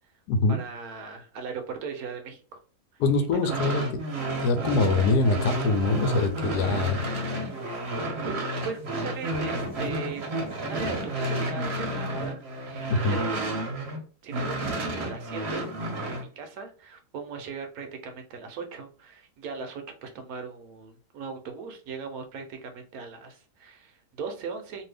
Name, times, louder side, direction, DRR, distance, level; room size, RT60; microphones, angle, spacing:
voice 1, 0.5-2.6 3.1-3.6 7.9-8.0 8.2-8.3 8.6-10.2 10.7-15.8 16.0-24.9, right 5 dB, 70° right, 5 dB, 1.0 m, -39 dB
voice 2, 3.0-3.8 4.4-7.0 12.9-13.2, left 3 dB, 80° left, 7 dB, 1.1 m, -23 dB
sound 1, 3.3-14.0 14.3-16.2, right 1 dB, 50° right, 0.9 m, -31 dB
2.6 x 2.6 x 3.3 m, 0.38 s
omnidirectional pair, 1.7 m